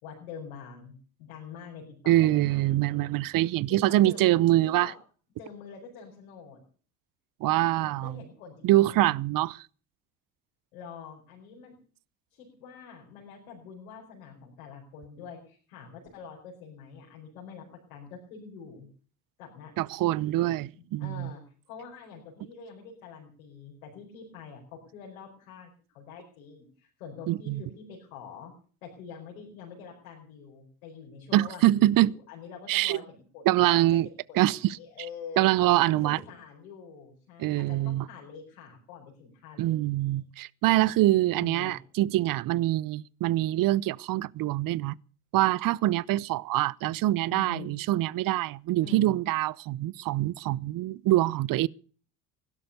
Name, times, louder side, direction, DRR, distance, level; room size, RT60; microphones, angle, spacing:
voice 1, 0.0-3.1 3.7-4.3 4.6-4.9 5.4-6.6 7.7-9.1 10.7-11.7 12.3-17.6 17.9-18.9 19.4-19.7 20.7-28.5 28.8-35.5 35.8-40.2 41.3-41.8 47.3-47.7 48.8-49.1, left 6 dB, 80° left, 4.9 m, -46 dB
voice 2, 2.1-4.9 7.4-8.2 8.6-9.6 19.8-21.3 27.3-27.6 31.3-32.2 32.7-33.0 33.5-34.1 34.4-34.8 35.4-36.2 37.4-38.1 39.6-44.9 45.3-51.7, right 15 dB, 55° right, 0.7 m, -24 dB
16.5 x 12.0 x 6.7 m
hypercardioid pair, 55°, 41 cm